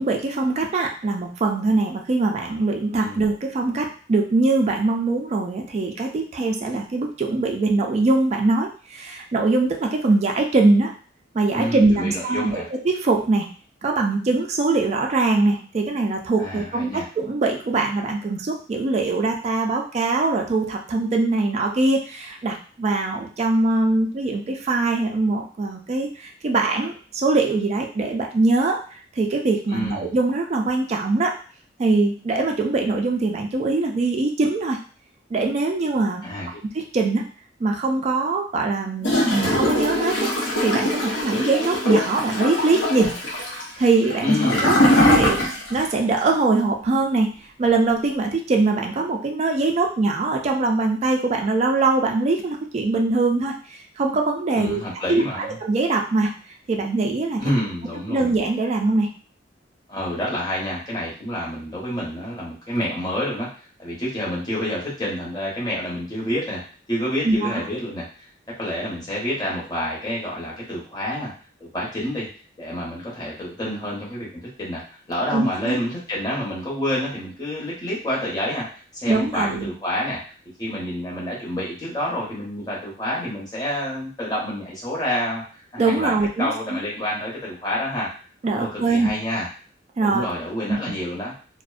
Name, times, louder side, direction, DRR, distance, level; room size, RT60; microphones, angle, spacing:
voice 1, 0.0-10.9 11.3-13.5 13.8-31.4 31.8-34.8 35.3-36.2 36.7-37.2 37.6-40.3 40.6-43.1 43.8-44.8 45.0-45.4 45.7-47.3 47.6-54.8 55.1-56.3 56.7-57.5 58.1-59.1 67.2-67.6 75.3-75.8 79.1-79.7 85.8-86.8 88.4-89.1 90.0-90.3 90.7-90.8, right 3 dB, 35° right, 2 dB, 0.3 m, -22 dB
voice 2, 11.5-12.7 16.4-17.1 29.7-30.1 36.2-36.5 44.2-45.1 54.5-55.6 57.4-58.3 59.9-66.6 66.9-68.3 68.6-71.3 71.6-72.3 72.6-74.8 75.1-80.2 80.6-86.1 86.4-88.1 88.5-89.5 90.0-91.3, left 1 dB, 20° left, -6 dB, 0.9 m, -28 dB
Gurgling / Toilet flush, 39.0-45.9 46.2-46.3, left 1 dB, 80° left, 0.8 m, -21 dB
2.4 x 2.1 x 2.4 m, 0.40 s
head